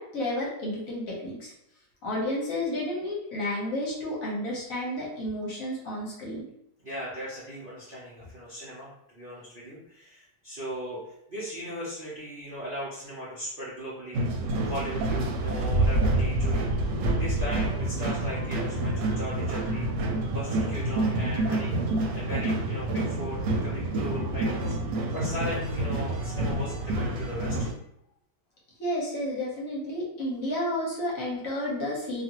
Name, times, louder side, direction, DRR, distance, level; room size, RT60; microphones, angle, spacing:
voice 1, 0.0-1.5 2.0-6.4 28.8-32.2, left 1 dB, 60° left, -4 dB, 1.1 m, -31 dB
voice 2, 6.8-14.2 14.6-19.9 20.3-21.7 22.1-24.7 25.1-27.7, equal, 55° right, -9 dB, 0.6 m, -38 dB
sound 1, 14.1-27.7, right 2 dB, 85° right, 1.3 m, -28 dB
2.8 x 2.4 x 2.8 m, 0.77 s
omnidirectional pair, 1.9 m